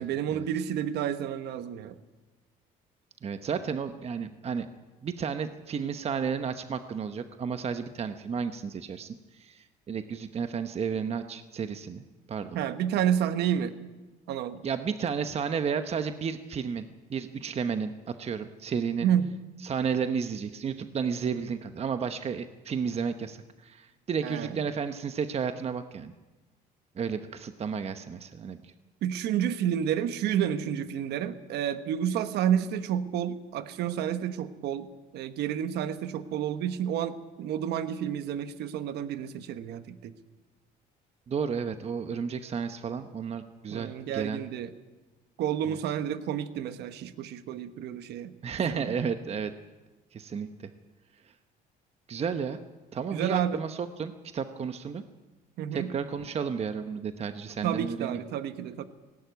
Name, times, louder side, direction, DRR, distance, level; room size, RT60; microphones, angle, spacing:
voice 1, 0.0-1.9 12.5-13.7 14.3-14.6 19.0-19.3 24.2-24.6 29.0-40.1 43.7-44.7 45.4-48.3 48.7-48.9 53.1-53.6 55.6-55.9 57.6-58.8, right 9 dB, 75° right, 11 dB, 1.1 m, -30 dB
voice 2, 3.2-4.7 5.0-12.6 14.6-16.8 17.1-19.1 19.6-26.1 27.0-28.7 41.3-44.4 45.7-45.8 48.4-49.5 50.1-50.7 52.1-52.6 52.9-55.0 55.7-58.2, right 6 dB, 40° right, 9 dB, 1.0 m, -32 dB
18.0 x 17.5 x 9.3 m, 1.2 s
cardioid pair, 110°, 17 cm